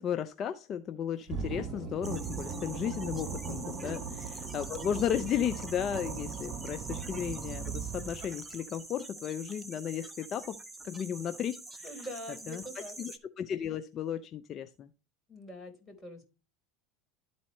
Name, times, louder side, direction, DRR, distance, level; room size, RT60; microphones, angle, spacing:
voice 1, 0.0-4.0 4.4-10.6 10.8-12.1 12.5-14.9, left 9 dB, 40° left, 0.6 m, -34 dB
sound 1, 1.3-8.5, right 6 dB, 45° right, 1.1 m, -39 dB
sound 2, 2.0-13.2, right 2 dB, 10° right, 1.1 m, -46 dB
voice 2, 11.8-12.9 15.3-16.2, equal, 5° left, 4.2 m, -44 dB
12.5 x 4.2 x 3.2 m
hypercardioid pair, 85°, 0 cm